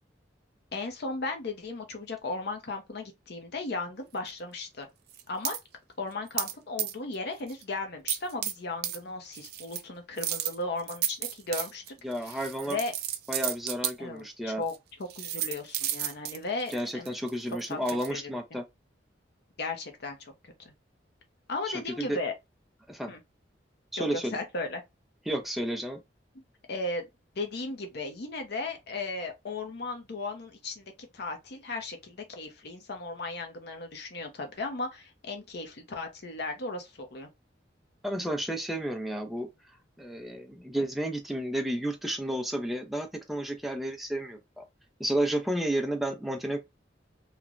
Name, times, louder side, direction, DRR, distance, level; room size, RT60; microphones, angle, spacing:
voice 1, 0.7-4.9 5.3-5.6 6.0-11.9 12.6-12.9 14.0-14.7 15.0-17.2 17.7-17.8 18.1-18.3 19.6-20.5 21.5-22.3 23.1-23.2 24.1-24.8 26.7-27.1 27.4-37.3, left 3 dB, 60° left, 0.7 m, -36 dB
sound 1, 5.1-5.6 6.4-6.5 6.8-7.1 7.5-7.6 8.1-8.5 8.8-9.0 9.3-9.8 10.2-13.9 14.7-14.8 15.1-18.1, right 11 dB, 60° right, 0.4 m, -32 dB
voice 2, 12.0-12.8 13.3-14.6 16.7-18.6 22.0-22.2 22.9-23.1 23.9-24.3 25.3-26.0 38.0-39.5 40.0-44.6 45.0-46.6, right 1 dB, ahead, 0.5 m, -31 dB
3.1 x 2.1 x 2.4 m
head